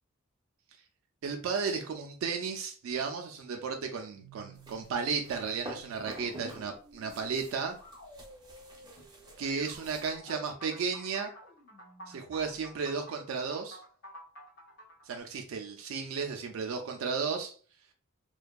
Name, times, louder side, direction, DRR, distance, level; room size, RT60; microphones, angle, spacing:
voice 1, 1.2-7.8 9.4-11.3 12.1-13.8 15.0-17.5, right 5 dB, 80° right, 4 dB, 0.3 m, -34 dB
sound 1, 4.1-12.7, right 1 dB, 65° left, 1.0 m, -55 dB
sound 2, 4.5-6.7 6.9-10.2, right 1 dB, 20° right, 0.5 m, -48 dB
sound 3, 10.1-15.2, equal, 50° left, 0.6 m, -50 dB
2.5 x 2.2 x 2.3 m, 0.42 s
head